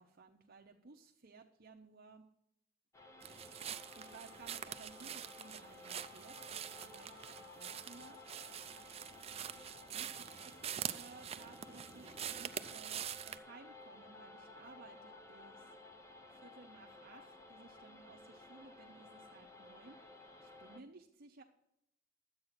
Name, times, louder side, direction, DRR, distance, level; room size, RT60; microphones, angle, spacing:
voice 1, 0.0-2.2 3.5-8.2 9.9-15.7 16.3-21.4, right 4 dB, 55° right, 2 dB, 0.8 m, -58 dB
sound 1, 2.9-20.8, left 2 dB, 15° left, 0.9 m, -56 dB
sound 2, 3.2-13.4, right 9 dB, 30° right, 0.4 m, -45 dB
Telephone, 3.9-4.4 4.9-5.5 6.0-6.6 7.0-7.6 8.0-8.6 9.1-9.7 10.2-10.7 11.2-11.7 12.2-12.7 13.1-13.7 14.1-14.7 15.1-15.7, left 3 dB, 85° left, 0.8 m, -65 dB
11.0 x 8.0 x 5.9 m, 0.82 s
head